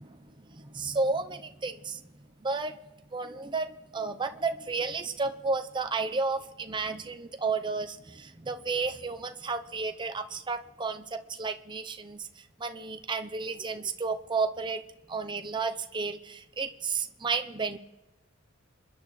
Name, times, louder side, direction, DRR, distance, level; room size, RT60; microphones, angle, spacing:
voice 1, 0.0-2.0 2.4-2.8 3.1-12.3 12.6-14.8 15.1-17.8, right 4 dB, 25° right, 6 dB, 0.7 m, -32 dB
27.5 x 10.5 x 3.2 m, 1.1 s
head